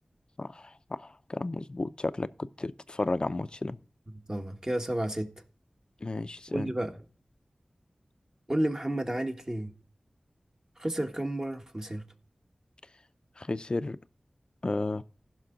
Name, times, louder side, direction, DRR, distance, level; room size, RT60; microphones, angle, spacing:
voice 1, 0.4-3.8 6.0-6.7 13.4-14.0 14.6-15.0, left 2 dB, 45° left, 0.5 m, -33 dB
voice 2, 4.3-5.3 6.5-7.0 8.5-9.7 10.8-12.0, right 1 dB, 25° right, 1.5 m, -31 dB
15.0 x 6.0 x 3.8 m
wide cardioid pair, 70°, 2 cm